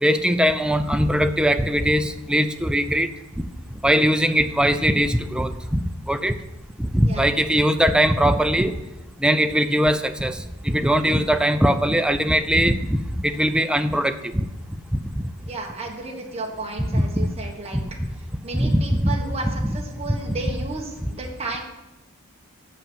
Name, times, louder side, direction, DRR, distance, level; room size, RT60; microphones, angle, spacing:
voice 1, 0.0-3.1 3.8-5.8 6.1-6.4 6.8-8.7 9.2-14.4 16.9-17.0 18.0-18.1 18.5-19.1 19.6-19.7, equal, 5° right, 9 dB, 0.4 m, -20 dB
voice 2, 15.5-17.8 18.4-21.6, right 3 dB, 30° right, 0 dB, 1.3 m, -33 dB
8.1 x 5.6 x 7.3 m, 0.98 s
head